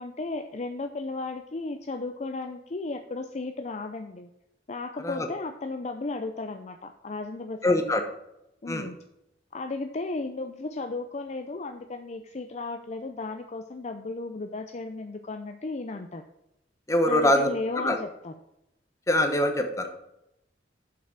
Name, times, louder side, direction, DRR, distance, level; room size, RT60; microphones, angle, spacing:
voice 1, 0.0-4.3 4.7-8.0 8.6-9.0 9.5-16.2 17.1-18.3, left 3 dB, 40° left, 6 dB, 0.5 m, -35 dB
voice 2, 7.6-8.0 8.7-8.9 16.9-17.5 17.8-18.0 19.1-20.0, left 1 dB, 15° left, 5 dB, 1.1 m, -23 dB
7.5 x 6.0 x 5.8 m, 0.85 s
head